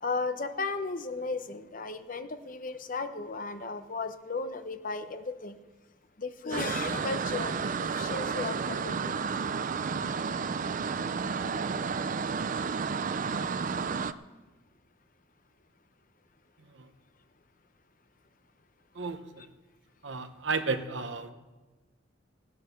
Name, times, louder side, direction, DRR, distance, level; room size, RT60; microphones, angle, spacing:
voice 1, 0.0-5.6 6.2-9.2, left 4 dB, 45° left, 9 dB, 0.9 m, -35 dB
sound 1, 6.5-14.1, right 5 dB, 45° right, 0.5 m, -31 dB
voice 2, 16.6-16.9 18.9-19.5 20.0-21.3, right 4 dB, 75° right, 8 dB, 1.0 m, -33 dB
15.5 x 9.4 x 6.6 m, 1.2 s
head